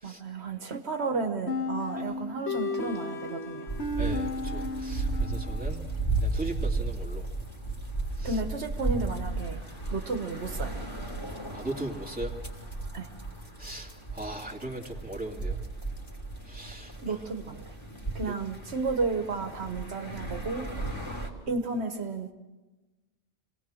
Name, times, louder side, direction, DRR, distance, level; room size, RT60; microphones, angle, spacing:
voice 1, 0.0-3.8 8.2-9.6 9.9-10.8 12.9-13.1 17.0-17.6 18.1-20.7 21.5-22.3, right 3 dB, 75° right, 5 dB, 1.5 m, -32 dB
sound 1, 1.5-6.1, left 2 dB, 80° left, 1.8 m, -34 dB
sound 2, 3.7-21.3, right 2 dB, 25° left, 3.2 m, -34 dB
voice 2, 4.0-5.9 6.2-7.2 8.2-8.3 11.5-12.3 13.6-15.6 16.4-16.9, right 2 dB, 10° right, -2 dB, 2.6 m, -38 dB
27.0 x 18.5 x 6.3 m, 1.2 s
omnidirectional pair, 1.1 m